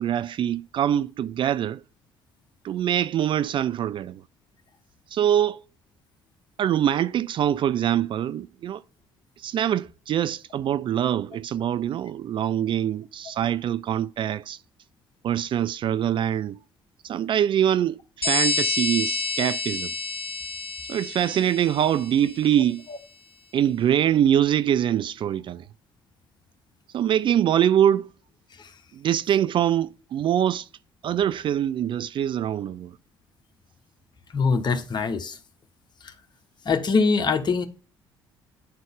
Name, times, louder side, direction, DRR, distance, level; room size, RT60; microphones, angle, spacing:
voice 1, 0.0-1.8 2.6-4.2 5.1-5.6 6.6-8.8 9.4-14.6 15.2-16.6 17.0-19.9 20.9-22.8 23.5-25.7 26.9-28.1 28.9-30.7 31.0-33.0, right 10 dB, 45° right, 0.4 m, -24 dB
sound 1, 18.2-22.5, left 3 dB, 90° left, 0.7 m, -29 dB
voice 2, 34.3-35.4 36.6-37.7, left 4 dB, 35° left, 1.2 m, -23 dB
10.5 x 3.8 x 3.6 m
figure-of-eight pair, 50°, 12 cm